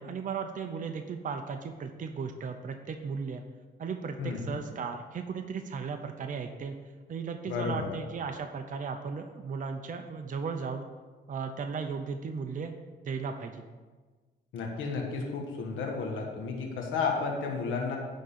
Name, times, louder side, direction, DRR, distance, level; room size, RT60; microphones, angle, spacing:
voice 1, 0.0-3.4 3.8-6.8 7.1-10.9 11.3-12.7 13.0-13.6, right 5 dB, 40° right, 5 dB, 0.7 m, -36 dB
voice 2, 4.2-4.6 7.5-8.0 14.5-18.0, left 4 dB, 80° left, 1 dB, 1.4 m, -32 dB
10.5 x 3.8 x 7.3 m, 1.4 s
cardioid pair, 90°, 20 cm